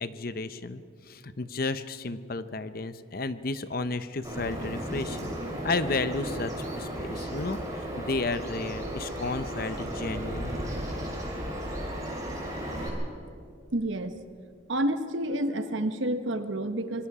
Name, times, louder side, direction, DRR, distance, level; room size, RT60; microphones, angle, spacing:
voice 1, 0.0-5.3 5.6-10.5, left 3 dB, 45° left, 13 dB, 0.7 m, -33 dB
Bird vocalization bird call bird song, 4.2-12.9, right 1 dB, 15° right, 3.9 m, -34 dB
voice 2, 13.7-14.1 14.7-17.1, right 1 dB, 70° right, 9 dB, 1.2 m, -29 dB
24.5 x 22.0 x 4.9 m, 2.3 s
head